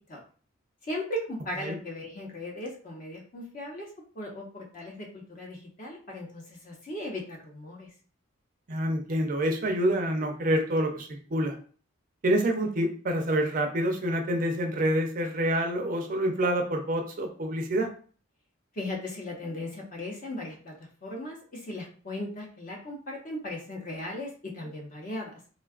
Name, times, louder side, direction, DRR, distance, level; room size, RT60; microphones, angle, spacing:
voice 1, 0.8-3.9 4.1-7.9 18.7-20.7 21.0-25.4, left 1 dB, 40° left, -1 dB, 0.7 m, -37 dB
voice 2, 8.7-11.6 12.2-17.9, right 1 dB, 40° right, 4 dB, 0.4 m, -27 dB
3.4 x 2.3 x 2.3 m, 0.41 s
head